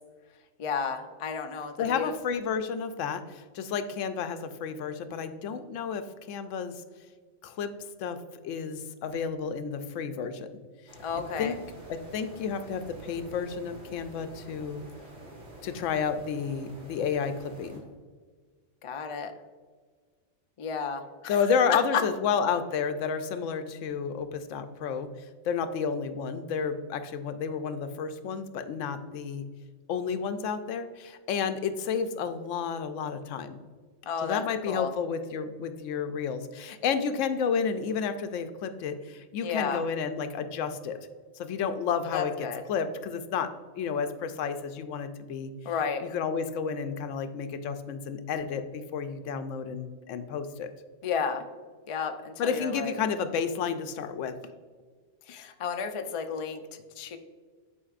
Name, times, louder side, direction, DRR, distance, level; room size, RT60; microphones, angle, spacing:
voice 1, 0.6-2.1 11.0-11.5 18.8-19.3 20.6-21.4 21.7-22.0 34.0-34.9 39.4-39.8 42.1-42.6 45.6-46.0 51.0-51.5 51.9-52.9 55.3-57.2, left 6 dB, 55° left, 6 dB, 0.3 m, -32 dB
voice 2, 1.8-6.8 7.4-7.7 8.0-8.2 8.4-10.5 11.4-11.6 11.9-14.8 15.6-17.8 21.3-25.1 25.4-29.5 29.9-33.6 34.2-41.0 41.4-42.3 42.7-43.5 43.8-45.5 46.0-50.7 52.4-54.3, left 6 dB, 85° left, 9 dB, 0.9 m, -31 dB
sound 1, 10.9-17.8, right 1 dB, 70° right, 2.1 m, -47 dB
9.7 x 4.5 x 2.4 m, 1.5 s
omnidirectional pair, 1.3 m